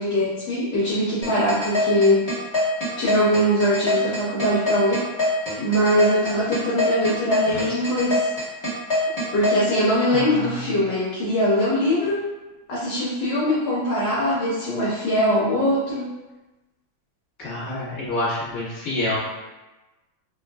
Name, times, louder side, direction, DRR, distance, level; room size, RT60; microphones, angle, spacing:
voice 1, 0.0-2.3 3.0-5.0 5.6-8.3 9.3-12.2 12.7-16.1, equal, 65° left, -7 dB, 1.3 m, -22 dB
sound 1, 1.2-9.6, left 2 dB, 20° left, 0.7 m, -23 dB
voice 2, 10.1-10.5 17.4-19.2, left 1 dB, 45° left, -10 dB, 1.7 m, -27 dB
3.8 x 2.3 x 2.3 m, 1.1 s
omnidirectional pair, 2.3 m